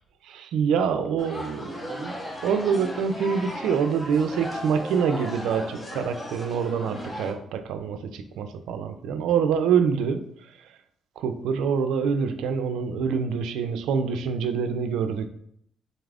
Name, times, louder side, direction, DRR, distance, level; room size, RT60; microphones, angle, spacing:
voice 1, 0.3-2.1 2.4-10.2 11.2-15.3, right 6 dB, 85° right, 9 dB, 0.4 m, -26 dB
sound 1, 1.2-7.3, equal, 20° left, 0.8 m, -36 dB
4.0 x 2.4 x 3.3 m, 0.70 s
cardioid pair, 90°, 0 cm